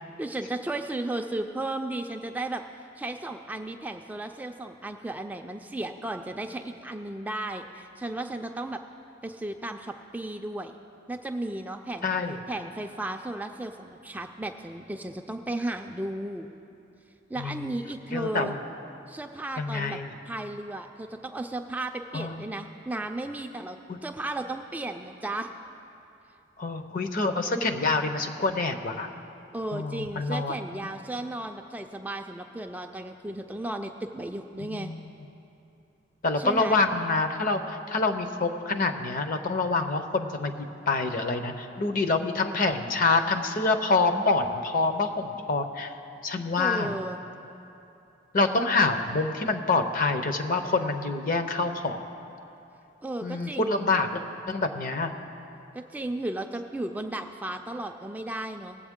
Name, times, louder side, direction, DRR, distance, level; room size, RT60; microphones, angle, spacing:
voice 1, 0.2-2.6 3.0-8.8 9.2-10.7 11.1-12.1 12.5-16.5 17.3-18.5 19.1-20.0 20.3-25.5 29.5-34.9 36.4-36.8 46.6-47.2 53.0-53.9 55.7-58.8, right 2 dB, 10° right, 4 dB, 0.3 m, -34 dB
voice 2, 12.0-12.4 17.4-17.7 18.1-18.6 19.6-20.1 22.1-22.4 26.6-29.1 29.7-30.6 34.6-35.0 36.2-45.9 46.2-46.9 48.3-52.0 53.2-55.1, left 3 dB, 45° left, 7 dB, 0.7 m, -26 dB
19.5 x 7.7 x 3.6 m, 2.8 s
head